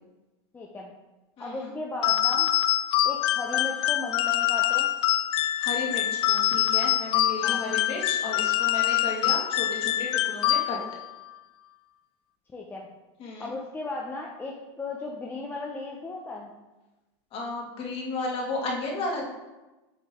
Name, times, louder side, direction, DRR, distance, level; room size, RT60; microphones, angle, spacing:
voice 1, 0.5-0.9 1.4-2.5 3.0-4.9 7.4-7.6 12.5-12.9 13.4-16.5, left 2 dB, 15° left, -1 dB, 0.7 m, -36 dB
voice 2, 1.4-1.7 5.6-10.8 13.2-13.5 17.3-19.2, left 2 dB, 40° left, -1 dB, 1.9 m, -33 dB
sound 1, 2.0-11.1, left 14 dB, 60° left, 0.5 m, -25 dB
8.0 x 5.3 x 3.7 m, 1.1 s
supercardioid pair, 125°, 15 cm